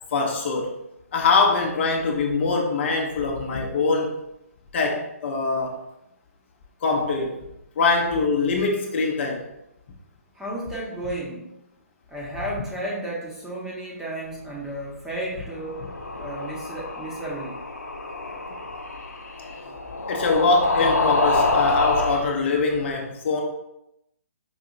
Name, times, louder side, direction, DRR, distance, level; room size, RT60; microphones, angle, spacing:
voice 1, 0.1-0.8 1.1-4.1 4.7-5.8 6.8-7.4 7.8-9.4 15.8-15.9 20.1-23.4, left 4 dB, 50° left, 1 dB, 0.6 m, -23 dB
voice 2, 10.3-11.5 12.1-15.8 16.2-17.6 18.2-18.5, right 1 dB, 5° right, -5 dB, 0.8 m, -33 dB
sound 1, 15.5-22.2, left 3 dB, 85° left, 0.7 m, -26 dB
5.0 x 2.7 x 2.5 m, 0.83 s
figure-of-eight pair, 135°, 8 cm